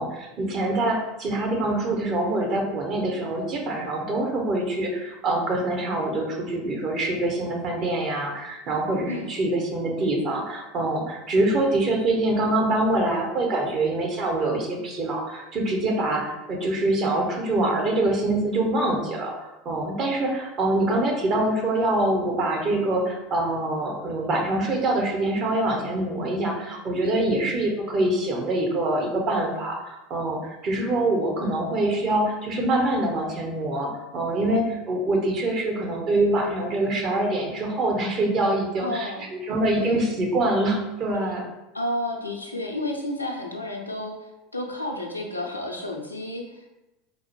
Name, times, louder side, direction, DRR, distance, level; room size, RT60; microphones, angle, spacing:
voice 1, 0.0-41.4, right 2 dB, 40° right, 0 dB, 0.8 m, -25 dB
voice 2, 38.8-39.2 39.8-40.0 41.7-46.7, left 1 dB, 90° left, 0 dB, 0.4 m, -31 dB
3.9 x 2.1 x 2.9 m, 0.99 s
figure-of-eight pair, 75°, 0 cm